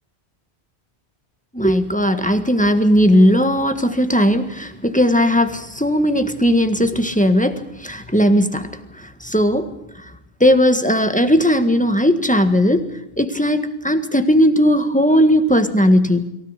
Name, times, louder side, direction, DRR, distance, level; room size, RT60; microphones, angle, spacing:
voice 1, 1.5-8.7 9.2-9.7 10.4-12.9 13.2-16.3, equal, 5° left, 7 dB, 1.6 m, -17 dB
23.0 x 17.0 x 8.3 m, 0.87 s
omnidirectional pair, 1.1 m